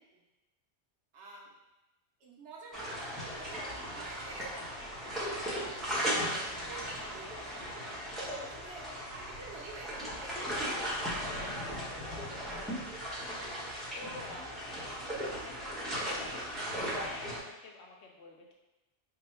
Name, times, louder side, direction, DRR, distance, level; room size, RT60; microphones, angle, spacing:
voice 1, 1.1-1.5 2.2-4.5 5.1-7.8 8.4-10.3, right 3 dB, 85° right, -2 dB, 1.1 m, -49 dB
sound 1, 2.7-17.4, equal, ahead, 0.8 m, -37 dB
voice 2, 11.3-12.8 13.7-18.5, left 3 dB, 80° left, 0 dB, 0.9 m, -50 dB
3.7 x 2.0 x 4.3 m, 1.0 s
omnidirectional pair, 1.1 m